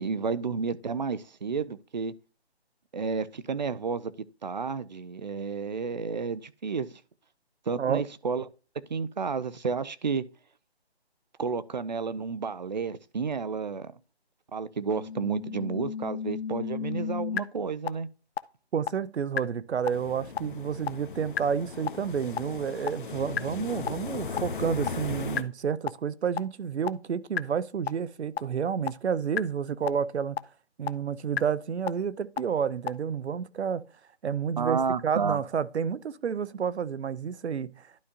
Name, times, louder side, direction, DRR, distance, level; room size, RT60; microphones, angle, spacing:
voice 1, 0.0-2.1 2.9-4.1 4.4-7.0 7.7-8.5 8.9-10.3 11.4-13.9 14.5-18.1 34.6-35.4, right 5 dB, 45° right, 0.5 m, -31 dB
sound 1, 14.9-17.4 17.9-18.0 18.4-18.5 18.9-19.0 19.4-19.5 19.9-20.0 20.4-20.5 20.9-21.0 21.4-21.5 21.9-22.0 22.4-22.5 22.9-23.0 23.4-23.5 23.9-24.0 24.4-24.5 24.9-25.0 25.4-25.5 25.9-26.0 26.4-26.5 26.9-27.0 27.4-27.5 27.9-28.0 28.4-28.5 28.9-29.0 29.4-29.5 29.9-30.0 30.4-30.5 30.9-31.0 31.4-31.5 31.9-32.0 32.4-32.5 32.9-33.0, left 8 dB, 70° left, 0.6 m, -30 dB
voice 2, 18.7-30.4 30.8-33.8 34.2-37.8, right 7 dB, 85° right, 0.7 m, -30 dB
sound 2, 19.9-25.4, left 5 dB, 50° left, 1.1 m, -37 dB
11.5 x 4.9 x 2.8 m
hypercardioid pair, 165°, 32 cm